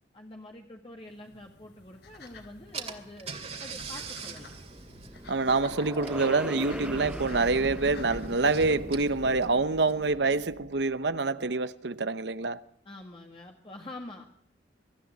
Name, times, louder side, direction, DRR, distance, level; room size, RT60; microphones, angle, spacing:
voice 1, 0.1-3.3 3.6-4.5 12.9-14.2, left 1 dB, 30° left, 1.7 m, -46 dB
sound 1, 1.0-9.4, left 3 dB, 65° left, 3.7 m, -50 dB
Car / Engine, 2.3-2.4 2.7-10.2, right 5 dB, 35° right, 2.5 m, -44 dB
sound 2, 4.6-11.0, equal, 5° right, 0.8 m, -40 dB
voice 2, 5.3-12.6, right 3 dB, 70° right, 0.9 m, -26 dB
24.0 x 13.5 x 9.3 m
head